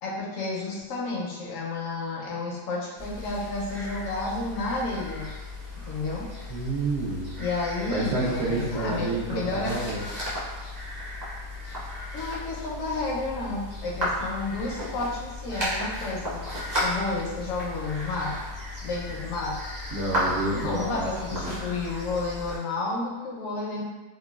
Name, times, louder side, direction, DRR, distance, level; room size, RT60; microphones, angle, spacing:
voice 1, 0.0-5.3 5.8-6.3 7.4-9.8 12.1-16.4 16.8-18.4 18.8-19.6 20.5-23.8, left 3 dB, 70° left, -3 dB, 0.8 m, -31 dB
sound 1, 3.0-22.6, left 1 dB, 25° right, 0.4 m, -34 dB
voice 2, 6.5-7.4 7.9-10.0 19.9-21.6, right 2 dB, 75° right, -9 dB, 0.6 m, -29 dB
2.9 x 2.2 x 2.2 m, 1.2 s
omnidirectional pair, 1.8 m